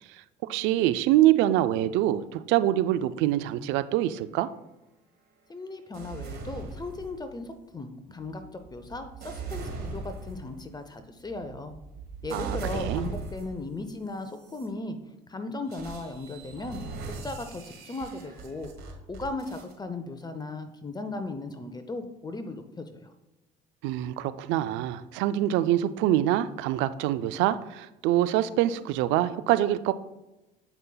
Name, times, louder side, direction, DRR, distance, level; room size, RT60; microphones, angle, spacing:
voice 1, 0.5-4.5 12.3-13.1 23.8-29.9, right 13 dB, 70° right, 14 dB, 0.4 m, -25 dB
voice 2, 5.5-11.8 12.2-15.0 15.3-16.8 17.1-23.1, left 2 dB, 20° left, 8 dB, 0.6 m, -37 dB
sound 1, 5.9-7.5 8.2-13.7 14.3-14.7 15.7-19.7, right 4 dB, 50° right, 1.7 m, -39 dB
7.9 x 5.4 x 2.3 m, 1.0 s
hypercardioid pair, 65°, 20 cm